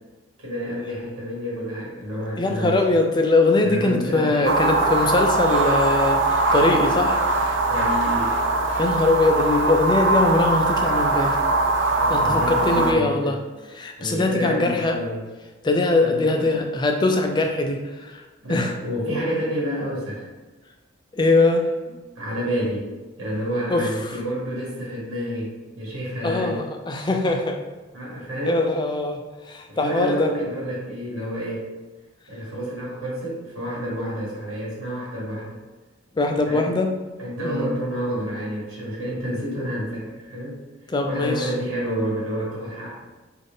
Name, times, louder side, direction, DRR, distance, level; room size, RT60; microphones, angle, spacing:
voice 1, 0.4-3.0 3.6-4.8 7.7-8.3 11.9-13.4 14.0-15.2 16.0-16.6 18.4-20.3 22.1-22.9 23.2-26.6 27.9-28.7 29.7-31.7 32.3-35.6 36.4-36.8 37.2-40.6 41.1-42.9, equal, 85° right, -6 dB, 1.5 m, -29 dB
voice 2, 2.4-7.2 8.8-11.4 12.1-13.4 13.7-15.0 15.6-18.2 18.5-18.7 21.2-21.7 23.7-23.9 26.2-27.6 28.5-29.2 29.5-30.3 36.2-36.9 37.4-37.7 40.9-41.5, left 2 dB, 20° left, 4 dB, 0.3 m, -21 dB
sound 1, 4.4-12.9, right 2 dB, 60° right, 0.4 m, -21 dB
3.8 x 2.5 x 3.6 m, 1.2 s
head